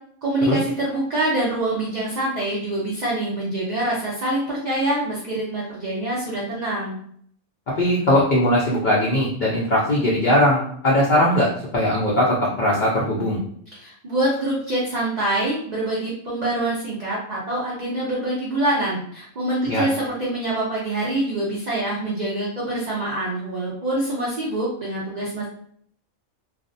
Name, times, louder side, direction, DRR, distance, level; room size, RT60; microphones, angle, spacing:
voice 1, 0.2-6.9 13.7-25.4, right 1 dB, 65° right, -6 dB, 0.4 m, -25 dB
voice 2, 7.8-13.4 19.7-19.8, left 1 dB, 65° left, -6 dB, 0.4 m, -20 dB
2.4 x 2.0 x 2.5 m, 0.64 s
omnidirectional pair, 1.5 m